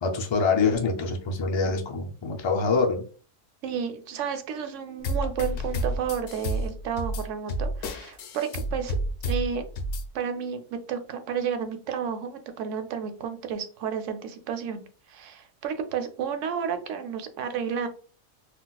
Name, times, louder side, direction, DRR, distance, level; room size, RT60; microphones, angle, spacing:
voice 1, 0.0-3.1, left 4 dB, 45° left, 3 dB, 0.4 m, -25 dB
voice 2, 3.6-9.0 9.2-9.6 10.1-14.8 15.1-17.9, right 7 dB, 85° right, 7 dB, 0.9 m, -31 dB
sound 1, 5.0-10.1, equal, 70° left, 0.8 m, -30 dB
3.9 x 2.4 x 2.3 m, 0.39 s
omnidirectional pair, 1.2 m